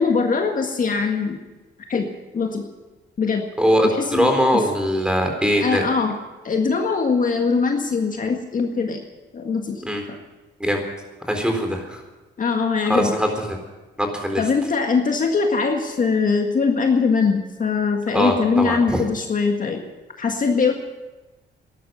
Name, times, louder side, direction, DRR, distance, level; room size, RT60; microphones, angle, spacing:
voice 1, 0.0-1.4 1.9-2.7 3.2-3.5 3.8-4.6 5.6-6.2 6.4-9.0 9.3-10.2 12.4-13.1 14.4-19.8 20.2-20.7, left 5 dB, 45° left, 3 dB, 1.7 m, -22 dB
voice 2, 3.6-5.8 9.8-10.0 10.6-10.8 11.3-12.0 12.9-13.3 14.0-14.4 18.1-19.0, equal, 5° right, 3 dB, 4.0 m, -21 dB
13.5 x 11.5 x 9.2 m, 1.1 s
cardioid pair, 90°, 20 cm